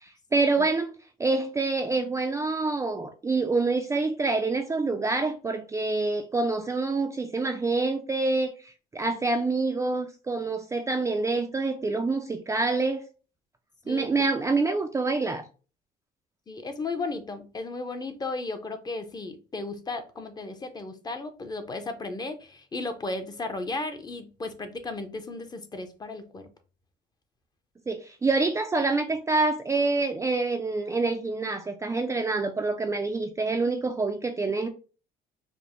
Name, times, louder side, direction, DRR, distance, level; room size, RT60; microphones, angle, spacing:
voice 1, 0.0-0.9 1.2-13.0 13.9-15.4 27.9-34.7, right 3 dB, 15° right, 0.4 m, -26 dB
voice 2, 16.5-26.5, left 3 dB, 25° left, 0.6 m, -35 dB
5.1 x 2.1 x 2.9 m
cardioid pair, 110°, 17 cm